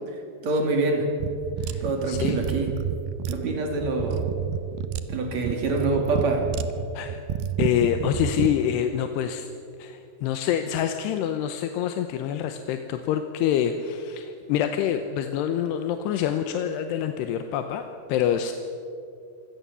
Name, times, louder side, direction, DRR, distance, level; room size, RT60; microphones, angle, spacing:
voice 1, 0.4-1.1 1.8-2.8 3.3-4.3 5.1-6.5, right 3 dB, 45° right, 3 dB, 3.7 m, -25 dB
sound 1, 1.2-8.6, right 8 dB, 75° right, 2.5 m, -29 dB
voice 2, 1.6-2.4 6.9-7.2 7.6-9.5 9.8-17.8 18.1-18.5, left 9 dB, 85° left, 7 dB, 3.0 m, -26 dB
25.0 x 17.5 x 7.0 m, 2.5 s
omnidirectional pair, 4.7 m